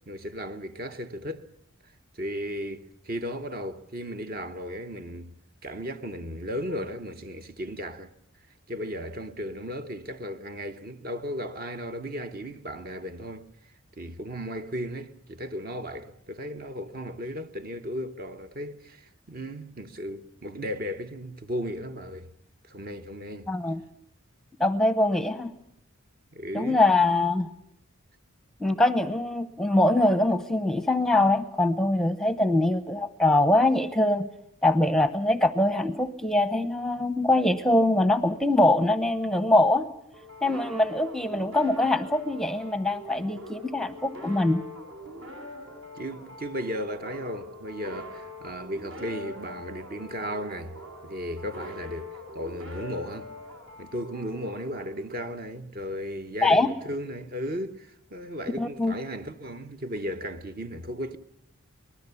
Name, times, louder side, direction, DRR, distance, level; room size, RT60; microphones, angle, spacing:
voice 1, 0.1-1.5 2.1-5.3 5.6-8.1 8.7-13.5 14.0-22.3 22.6-23.5 26.3-26.8 45.9-50.8 51.0-53.3 53.8-61.2, equal, 40° right, 1.0 m, -35 dB
voice 2, 23.5-23.8 24.6-25.5 26.5-27.5 28.6-34.3 34.6-39.9 40.4-44.6 56.4-56.7 58.6-59.0, left 2 dB, ahead, 0.8 m, -23 dB
sound 1, 40.1-55.5, left 1 dB, 65° right, 6.1 m, -43 dB
24.5 x 19.5 x 7.0 m
head